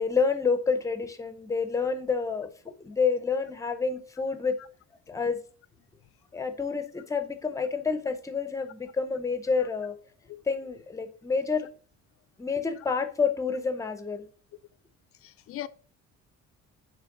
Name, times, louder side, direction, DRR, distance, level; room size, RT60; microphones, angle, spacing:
voice 1, 0.0-4.6 5.1-5.4 6.3-10.0 10.5-11.7 12.4-14.2, left 5 dB, 10° left, 0.6 m, -28 dB
voice 2, 15.2-15.7, left 13 dB, 50° left, 0.4 m, -39 dB
7.4 x 3.3 x 5.9 m
cardioid pair, 160°, 30 cm